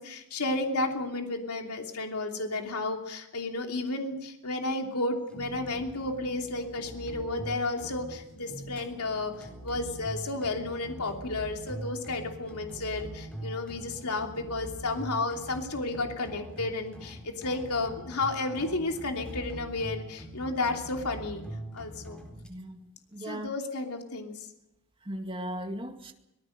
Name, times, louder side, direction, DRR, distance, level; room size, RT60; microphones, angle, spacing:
voice 1, 0.0-21.4 21.7-22.2 23.2-24.5, left 2 dB, 90° left, 3.0 m, -32 dB
sound 1, 5.3-22.5, right 1 dB, 5° left, 4.1 m, -43 dB
voice 2, 22.4-23.5 25.0-26.1, right 1 dB, 25° right, 2.1 m, -38 dB
25.0 x 18.5 x 6.6 m
head